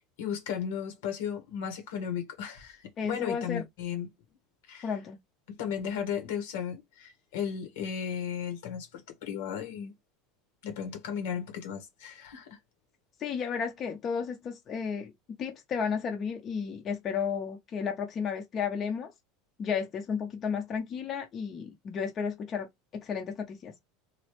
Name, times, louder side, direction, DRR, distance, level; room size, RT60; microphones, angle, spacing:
voice 1, 0.2-4.1 4.7-4.9 5.6-9.9 10.6-12.6, left 8 dB, 80° left, 1.2 m, -35 dB
voice 2, 3.0-3.6 4.8-5.2 13.2-15.1 15.4-19.1 19.6-23.7, left 6 dB, 30° left, 0.7 m, -33 dB
3.1 x 2.3 x 3.1 m
supercardioid pair, 150°, 0 cm